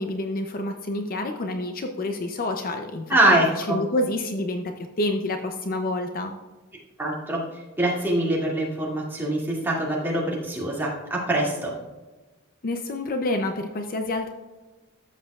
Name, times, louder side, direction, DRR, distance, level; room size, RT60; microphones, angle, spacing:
voice 1, 0.0-3.2 3.7-6.3 12.6-14.3, left 1 dB, 40° left, 5 dB, 0.6 m, -28 dB
voice 2, 3.1-3.8 7.0-11.7, right 1 dB, 10° right, -5 dB, 2.2 m, -24 dB
13.5 x 7.3 x 2.4 m, 1.2 s
head